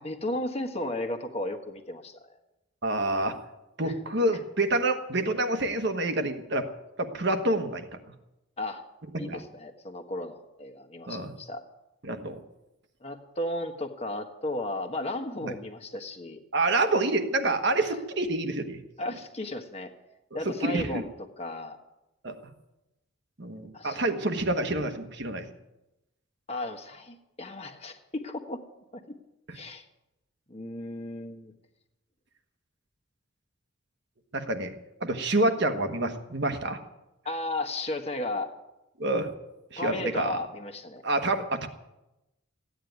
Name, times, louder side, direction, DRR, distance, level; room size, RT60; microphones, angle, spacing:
voice 1, 0.0-2.4 3.8-3.9 8.6-8.8 9.2-11.6 13.0-16.4 17.9-18.0 19.0-19.9 20.3-21.1 21.4-21.8 23.7-24.0 26.5-28.6 28.9-29.0 29.5-29.8 30.5-31.5 37.2-38.5 39.8-41.0, left 1 dB, 30° left, 5 dB, 1.3 m, -34 dB
voice 2, 2.8-3.4 3.8-6.7 7.0-7.9 9.3-9.4 11.1-11.3 12.0-12.4 15.4-15.5 16.5-18.8 20.4-20.9 22.2-22.3 23.4-25.4 34.3-36.8 39.0-39.3 39.7-40.4 41.0-41.7, right 2 dB, 55° right, 6 dB, 1.3 m, -27 dB
15.0 x 9.4 x 9.4 m, 0.96 s
head